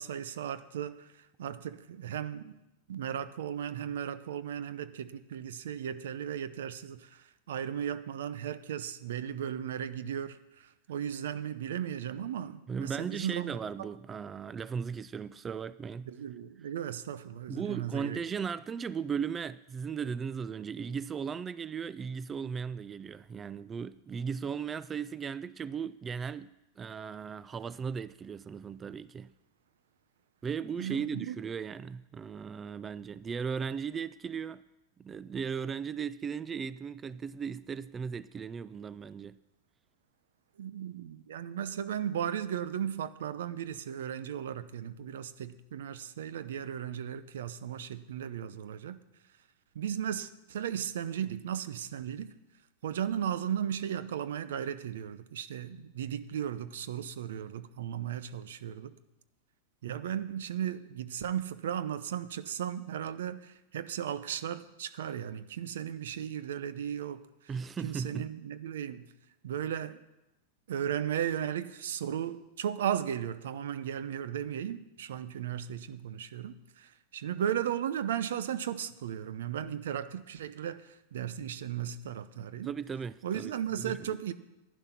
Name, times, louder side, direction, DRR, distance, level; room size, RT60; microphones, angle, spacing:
voice 1, 0.0-2.5 2.9-13.9 16.1-18.2 30.8-31.3 40.6-49.0 49.7-52.3 52.8-58.9 59.8-67.2 67.8-69.1 69.4-70.0 70.7-82.7 83.2-84.3, right 9 dB, 75° right, 0.7 m, -36 dB
voice 2, 12.7-16.1 17.5-29.3 30.4-34.6 35.0-39.4 67.5-68.3 82.6-84.0, right 6 dB, 20° right, 0.3 m, -37 dB
11.0 x 10.5 x 5.9 m
hypercardioid pair, 115°, 0 cm